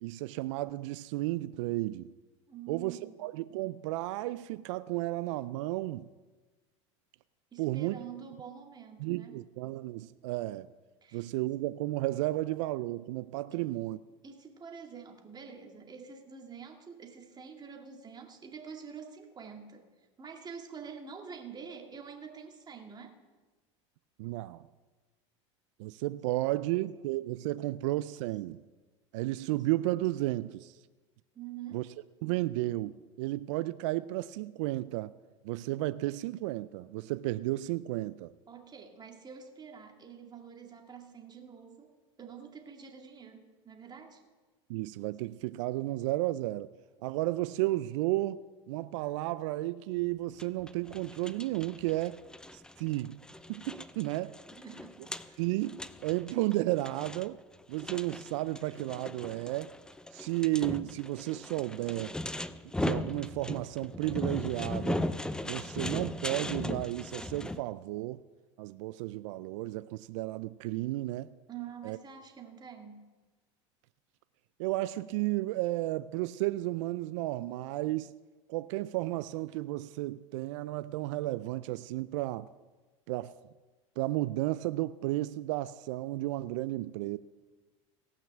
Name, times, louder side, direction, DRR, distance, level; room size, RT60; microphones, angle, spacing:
voice 1, 0.0-2.1 2.7-6.1 7.6-8.0 9.0-10.7 11.1-14.0 24.2-24.6 25.8-28.6 29.1-30.8 31.7-31.8 32.2-35.1 35.4-38.3 44.7-46.7 47.0-52.2 52.5-53.2 53.5-54.3 55.4-57.4 57.7-59.8 60.1-62.2 62.8-65.0 65.4-68.2 68.6-71.3 71.8-72.0 74.6-78.1 78.5-82.5 83.1-83.3 84.0-87.2, right 17 dB, 75° right, 0.4 m, -33 dB
voice 2, 2.5-3.2 7.5-9.5 11.0-11.3 13.5-13.6 14.2-23.2 31.3-31.9 38.5-44.2 54.5-55.4 71.5-73.1, right 7 dB, 25° right, 2.2 m, -47 dB
sound 1, 50.4-67.6, left 1 dB, 5° left, 0.5 m, -38 dB
17.5 x 5.9 x 7.3 m
supercardioid pair, 100°, 16 cm